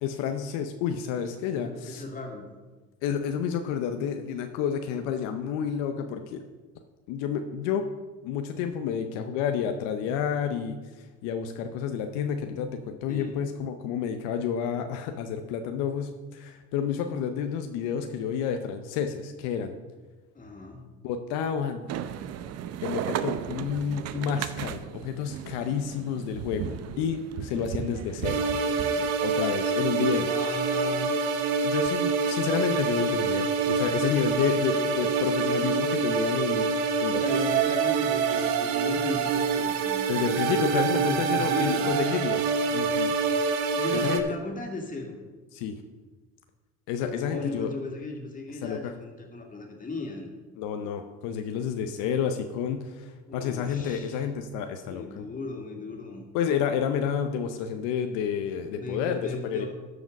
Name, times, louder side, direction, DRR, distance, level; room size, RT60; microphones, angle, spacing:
voice 1, 0.0-2.0 3.0-6.4 7.1-7.9 8.2-19.8 21.0-21.9 22.8-28.5 29.2-30.3 31.6-36.7 37.0-37.2 40.1-43.2 43.5-44.2 45.5-45.8 46.9-47.7 48.6-48.9 50.6-55.3 56.3-59.7, left 7 dB, 80° left, 7 dB, 0.7 m, -30 dB
voice 2, 1.6-2.5 13.1-13.4 20.3-20.9 30.0-31.2 37.2-40.4 40.9-42.0 43.7-45.2 47.1-50.3 53.3-54.3 54.8-56.2 58.8-59.7, left 3 dB, 25° left, 1 dB, 2.4 m, -36 dB
sound 1, 21.9-29.1, right 9 dB, 55° right, 0.6 m, -35 dB
sound 2, 28.2-44.2, right 5 dB, 85° right, 0.9 m, -26 dB
12.5 x 5.0 x 5.2 m, 1.3 s
supercardioid pair, 80°, 31 cm